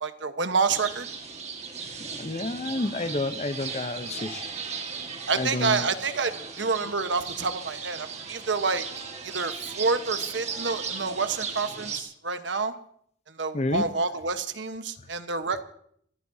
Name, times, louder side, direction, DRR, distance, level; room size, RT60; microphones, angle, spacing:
voice 1, 0.0-1.1 5.3-8.8 9.2-12.7 13.3-15.6, right 4 dB, 75° right, 1.1 m, -28 dB
sound 1, 0.7-12.0, right 5 dB, 35° right, 1.7 m, -37 dB
voice 2, 2.0-4.5 5.3-5.9 13.5-14.0, left 2 dB, 35° left, 0.7 m, -30 dB
27.5 x 14.5 x 2.8 m
head